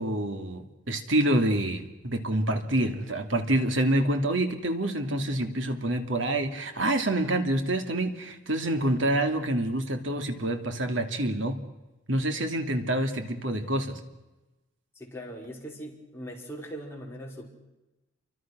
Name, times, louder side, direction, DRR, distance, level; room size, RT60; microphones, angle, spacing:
voice 1, 0.0-11.6 12.1-14.0, right 1 dB, 65° right, 6 dB, 2.7 m, -27 dB
voice 2, 14.9-17.5, equal, 10° left, -2 dB, 5.2 m, -40 dB
29.0 x 24.5 x 6.2 m, 1.0 s
head